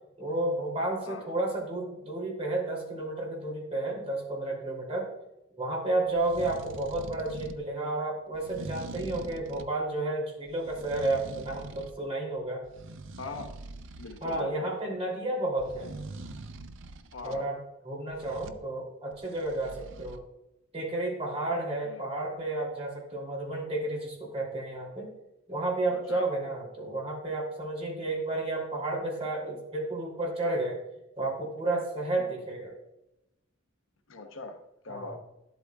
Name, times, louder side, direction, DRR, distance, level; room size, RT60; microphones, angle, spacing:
voice 1, 0.2-5.1 5.6-12.6 14.2-15.9 17.2-17.6 17.8-20.2 20.7-25.1 25.5-30.8 31.2-32.7 34.9-35.1, right 2 dB, 30° right, -2 dB, 3.0 m, -32 dB
sound 1, 6.1-7.6 8.3-9.8 10.4-12.0 12.4-14.4 15.6-17.4 18.1-18.6 19.1-20.2, right 2 dB, 65° right, 0.6 m, -44 dB
voice 2, 13.2-13.5 14.0-14.7 17.1-17.5 21.8-22.0 25.9-26.3 32.2-32.3 34.1-34.6 34.8-35.2, left 3 dB, 70° left, 5 dB, 0.9 m, -41 dB
12.0 x 8.2 x 2.4 m, 0.90 s
head